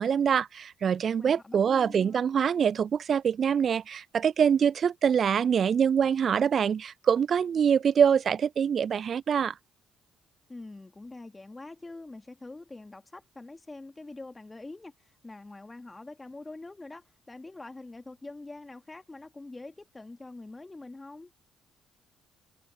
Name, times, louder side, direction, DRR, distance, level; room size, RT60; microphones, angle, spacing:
voice 1, 0.0-9.5, right 7 dB, 50° right, 0.5 m, -24 dB
voice 2, 1.2-2.2 10.5-21.3, left 2 dB, 20° left, 1.9 m, -45 dB
figure-of-eight pair, 45°, 0 cm